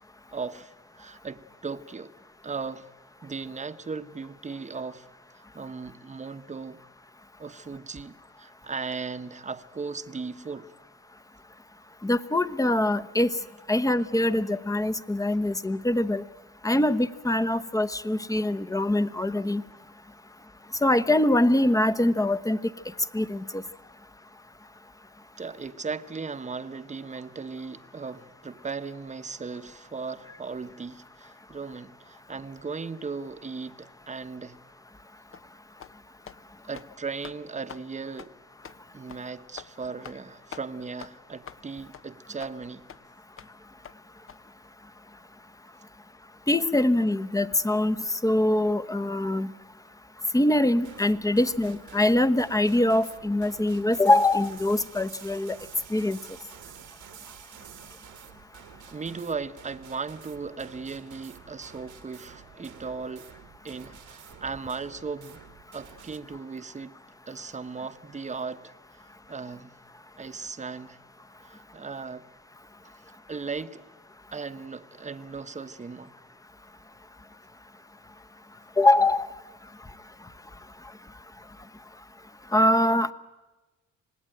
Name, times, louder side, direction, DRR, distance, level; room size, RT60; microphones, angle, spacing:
voice 1, 0.3-2.1 2.4-2.9 3.2-6.8 7.4-10.7 25.4-34.6 36.6-38.3 38.9-42.9 58.9-63.4 63.6-65.4 65.7-66.9 67.3-68.7 69.3-69.7 70.2-71.0 71.4-72.3 73.3-73.8 74.3-76.1, right 4 dB, 25° right, 1.0 m, -37 dB
voice 2, 12.0-13.3 13.7-16.2 16.6-19.6 20.8-22.6 23.1-23.6 46.5-49.5 50.3-55.6 55.9-56.2 78.8-79.3 82.5-83.1, left 1 dB, 10° left, 0.9 m, -23 dB
sound 1, 35.3-35.5 35.8-36.0 36.2-36.4 36.7-36.9 37.2-37.4 37.7-37.8 38.2-38.3 38.6-38.8 39.1-39.2 39.6-39.7 40.0-40.2 40.5-40.7 41.0-41.1 41.4-41.6 41.9-42.0 42.4-42.5 42.9-43.0 43.4-43.5 43.8-44.0 44.3-44.4, left 7 dB, 45° left, 0.9 m, -44 dB
sound 2, 50.8-66.2, right 10 dB, 80° right, 1.7 m, -50 dB
26.5 x 19.0 x 9.1 m
cardioid pair, 90°, 30 cm